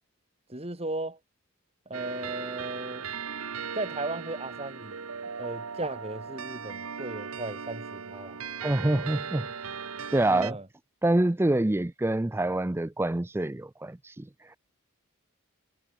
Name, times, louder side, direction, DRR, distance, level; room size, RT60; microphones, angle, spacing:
voice 1, 0.5-1.2 1.9-3.1 3.7-5.0 5.4-8.5 10.3-10.7, right 2 dB, 30° right, 2.4 m, -36 dB
sound 1, 1.9-10.5, right 6 dB, 80° right, 1.2 m, -38 dB
voice 2, 8.6-9.5 10.1-10.6 11.0-14.6, right 1 dB, 10° right, 0.4 m, -26 dB
head